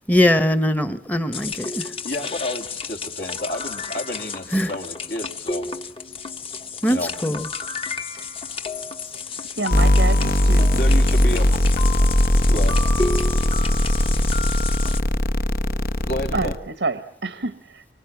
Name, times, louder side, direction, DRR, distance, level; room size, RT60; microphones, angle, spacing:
voice 1, 0.1-1.9 4.5-4.7 6.8-7.5, left 1 dB, 10° left, 1.0 m, -21 dB
sound 1, 1.3-15.0, left 4 dB, 30° left, 1.1 m, -31 dB
voice 2, 2.0-5.7 6.9-7.1 10.7-11.5 12.5-12.8 16.1-16.6, left 1 dB, 70° left, 3.0 m, -30 dB
voice 3, 9.6-10.7 16.3-17.9, right 3 dB, 85° right, 1.1 m, -28 dB
sound 2, 9.7-16.6, left 1 dB, 55° left, 0.9 m, -19 dB
24.5 x 24.5 x 7.1 m
head